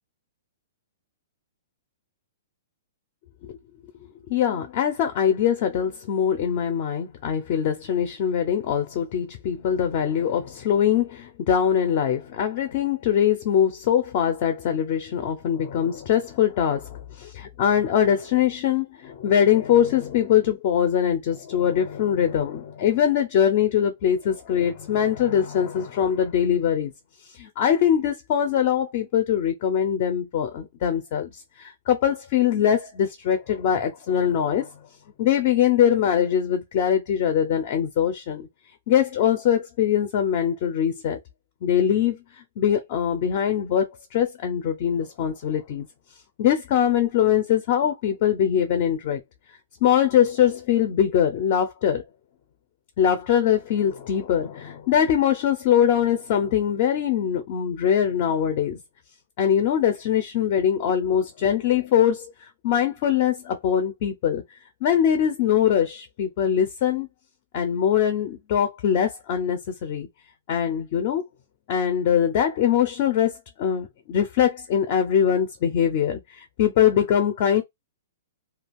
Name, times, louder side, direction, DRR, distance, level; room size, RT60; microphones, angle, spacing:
voice 1, 4.3-26.9 27.3-34.7 35.2-38.5 38.9-41.2 41.6-42.2 42.6-45.9 46.4-49.2 49.8-52.0 53.0-58.8 59.4-62.3 62.6-64.4 64.8-67.1 67.5-70.1 70.5-71.2 71.7-77.6, left 9 dB, 35° left, 0.5 m, -22 dB
2.4 x 2.3 x 3.4 m
hypercardioid pair, 170°, 0 cm